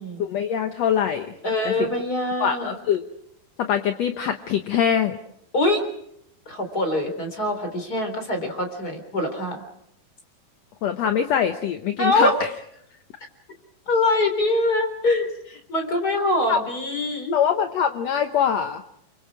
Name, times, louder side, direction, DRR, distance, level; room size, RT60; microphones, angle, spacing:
voice 1, 0.2-1.3 1.7-1.9 2.4-3.0 3.6-5.2 10.8-12.5 16.5-16.6 17.3-18.8, left 8 dB, 70° left, 7 dB, 1.6 m, -23 dB
voice 2, 1.4-2.8 5.5-5.9 6.5-9.6 12.0-12.4 13.9-15.3 15.7-17.4, left 2 dB, 25° left, 6 dB, 4.0 m, -23 dB
29.0 x 25.0 x 4.8 m, 0.72 s
omnidirectional pair, 4.3 m